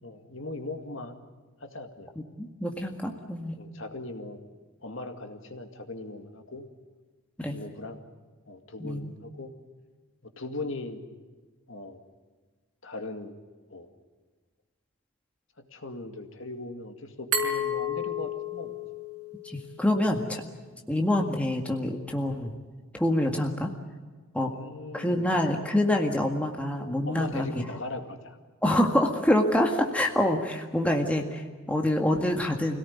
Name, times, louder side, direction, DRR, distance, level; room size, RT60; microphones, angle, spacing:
voice 1, 0.0-1.2 1.6-2.1 3.6-4.4 4.8-6.7 7.5-8.0 8.5-9.5 10.4-11.0 11.7-12.0 12.8-13.3 13.7-13.9 15.6-18.7 20.7-20.8 24.4-25.3 27.0-28.4, left 2 dB, 60° left, 6 dB, 2.1 m, -39 dB
voice 2, 2.4-3.6 7.4-7.6 8.8-9.1 19.4-20.4 20.9-22.5 22.9-23.7 24.3-24.5 24.9-27.5 28.6-32.8, left 1 dB, 5° left, 2 dB, 1.8 m, -26 dB
Glass, 17.3-20.1, left 3 dB, 85° right, 5.1 m, -32 dB
26.0 x 17.5 x 9.6 m, 1.4 s
head